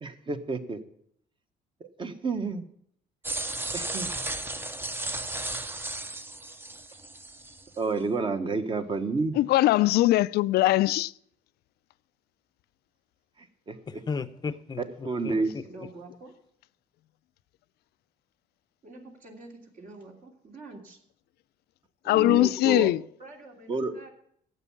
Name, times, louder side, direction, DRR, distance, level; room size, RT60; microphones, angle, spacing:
voice 1, 0.0-0.8 1.8-2.6 3.7-4.1 7.8-9.4 13.7-13.8 15.0-15.5 22.1-22.9 23.7-23.9, right 4 dB, 30° right, 1.2 m, -30 dB
sound 1, 3.2-7.7, right 2 dB, 15° right, 0.7 m, -34 dB
voice 2, 9.4-11.1 22.1-23.0, left 16 dB, 70° left, 0.4 m, -21 dB
voice 3, 13.9-15.9, left 5 dB, 25° left, 0.7 m, -36 dB
voice 4, 15.3-16.3 18.8-21.0 22.3-22.6 23.2-24.1, right 2 dB, 55° right, 3.0 m, -47 dB
12.0 x 8.4 x 7.1 m
cardioid pair, 110°, 17 cm